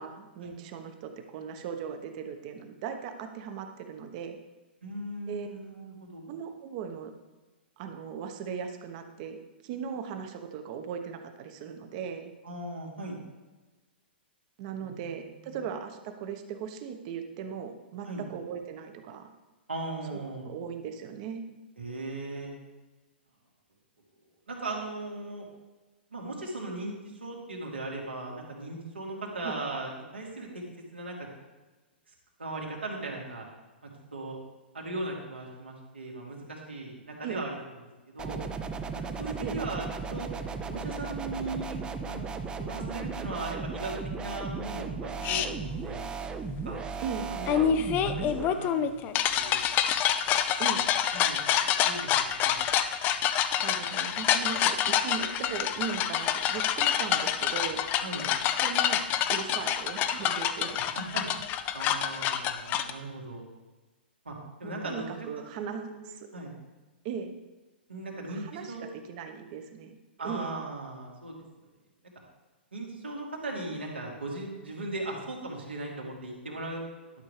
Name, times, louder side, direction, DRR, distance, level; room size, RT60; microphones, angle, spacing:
voice 1, 0.0-4.4 5.3-5.5 6.3-7.1 7.8-9.4 9.6-12.3 14.6-19.3 20.1-21.4 29.4-29.6 37.2-37.4 39.4-39.6 47.0-47.3 50.6-50.8 53.5-57.8 58.6-60.8 64.6-66.3 67.0-67.3 68.1-69.9 70.2-70.6, right 7 dB, 45° right, 6 dB, 1.2 m, -38 dB
voice 2, 4.8-6.2 12.4-13.2 14.8-15.0 18.0-18.2 19.7-20.5 21.8-22.5 24.5-25.5 26.1-30.6 30.9-31.3 32.1-32.2 32.4-33.5 34.1-34.4 34.7-37.5 38.1-38.4 39.2-40.3 40.7-43.9 44.2-46.1 46.6-46.8 47.3-47.7 48.0-49.1 49.4-49.6 51.1-51.4 51.8-52.6 58.0-58.3 60.9-61.3 61.7-63.4 64.2-65.3 65.5-66.5 67.9-68.8 70.2-71.4 72.7-76.8, right 2 dB, 85° right, -2 dB, 2.7 m, -38 dB
sound 1, 38.2-48.5, right 4 dB, 15° right, 0.6 m, -36 dB
sound 2, 45.2-45.5 47.5-62.9, left 10 dB, 30° left, 0.5 m, -27 dB
12.0 x 6.7 x 3.3 m, 1.2 s
figure-of-eight pair, 115°, 6 cm